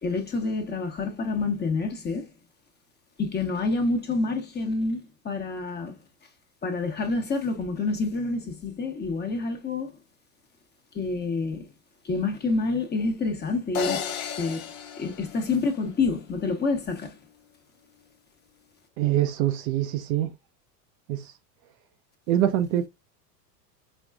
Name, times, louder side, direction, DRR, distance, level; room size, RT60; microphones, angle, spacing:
voice 1, 0.0-2.3 3.2-5.9 6.6-9.9 10.9-11.7 12.0-14.0 14.4-17.1, left 3 dB, 20° left, 1.0 m, -28 dB
sound 1, 13.7-16.1, left 7 dB, 55° left, 0.9 m, -33 dB
voice 2, 19.0-20.3 21.1-21.3 22.3-22.9, right 12 dB, 55° right, 0.6 m, -24 dB
5.2 x 2.3 x 2.3 m
hypercardioid pair, 105°, 48 cm